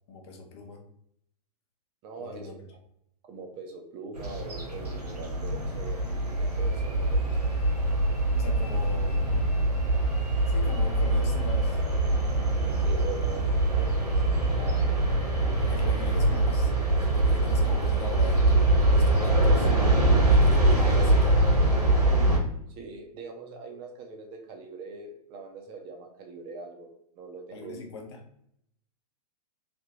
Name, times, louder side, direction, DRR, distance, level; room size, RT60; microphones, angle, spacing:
voice 1, 0.1-0.8 2.2-2.5 8.3-9.5 10.5-11.8 15.6-16.7 17.0-19.7 20.3-21.5 27.5-28.2, left 4 dB, 45° left, 2 dB, 0.8 m, -41 dB
voice 2, 2.0-2.6 3.3-7.4 12.6-13.9 14.5-15.0 15.5-16.1 22.8-26.9 27.2-27.9, right 4 dB, 25° right, 2 dB, 0.6 m, -42 dB
sound 1, 4.2-22.4, right 2 dB, 80° right, 1.3 m, -23 dB
3.4 x 2.8 x 2.9 m, 0.72 s
figure-of-eight pair, 110°, 20 cm